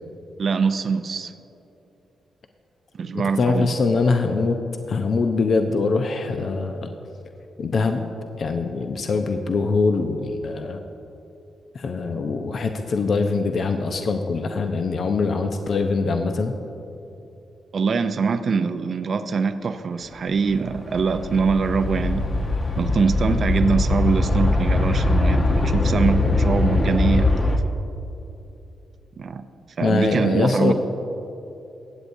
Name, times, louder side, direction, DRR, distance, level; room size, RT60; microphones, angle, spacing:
voice 1, 0.4-1.3 2.9-3.7 17.7-22.3 22.8-27.6 29.2-29.4 29.8-30.7, right 5 dB, 60° right, 9 dB, 0.5 m, -23 dB
voice 2, 3.4-4.6 4.9-6.9 7.6-8.1 8.4-10.8 11.7-16.5 29.8-30.7, left 4 dB, 60° left, 6 dB, 0.6 m, -23 dB
sound 1, 20.3-27.6, left 2 dB, 45° left, 1.0 m, -21 dB
23.5 x 8.0 x 2.7 m, 2.9 s
supercardioid pair, 45°, 0 cm